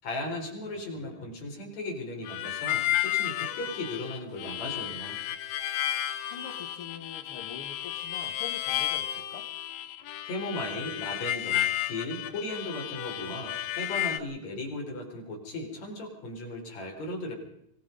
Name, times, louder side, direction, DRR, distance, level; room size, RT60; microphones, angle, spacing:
voice 1, 0.0-5.2 10.2-17.3, left 1 dB, 40° left, 1 dB, 5.8 m, -37 dB
voice 2, 0.7-1.4 6.3-9.4, left 6 dB, 60° left, 6 dB, 1.5 m, -45 dB
Harmonica, 2.3-14.2, left 13 dB, 75° left, 3.1 m, -32 dB
25.0 x 20.0 x 5.4 m, 0.74 s
omnidirectional pair, 4.7 m